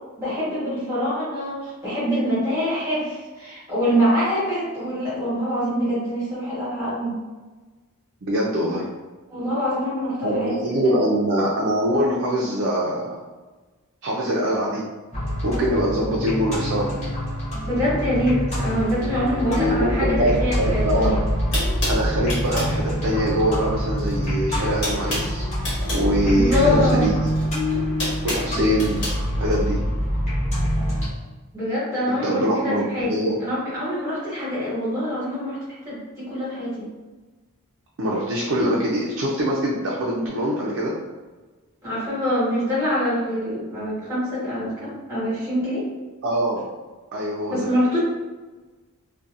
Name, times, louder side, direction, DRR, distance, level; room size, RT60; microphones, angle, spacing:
voice 1, 0.2-7.2 9.3-10.6 10.8-10.9 17.6-21.2 26.2-27.0 31.5-35.6 35.8-36.9 41.8-45.9 47.5-48.0, equal, 15° right, -10 dB, 1.2 m, -25 dB
voice 2, 8.3-8.9 10.2-13.2 14.0-14.8 15.4-16.9 19.5-21.1 21.9-25.5 25.9-27.3 28.2-29.0 29.4-29.8 32.1-33.3 38.0-41.0 46.2-46.6 47.1-47.7, equal, 55° right, -4 dB, 0.4 m, -23 dB
sound 1, 15.1-31.1, equal, 30° left, 0.8 m, -25 dB
sound 2, 21.0-21.1 21.5-22.8 24.0-24.3 24.5-26.1 27.2-29.2, left 1 dB, 55° left, 1.2 m, -29 dB
2.7 x 2.1 x 2.4 m, 1.3 s
head